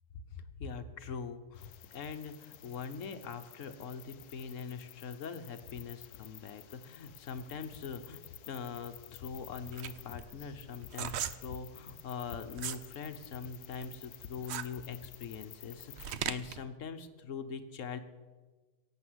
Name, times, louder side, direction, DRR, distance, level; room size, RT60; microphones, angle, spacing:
voice 1, 0.1-18.0, left 6 dB, 55° left, 9 dB, 1.3 m, -42 dB
sound 1, 1.6-16.1, left 10 dB, 75° left, 1.2 m, -52 dB
sound 2, 9.2-12.9 13.3-16.6, right 9 dB, 65° right, 0.7 m, -39 dB
17.5 x 7.7 x 8.0 m, 1.3 s
omnidirectional pair, 1.8 m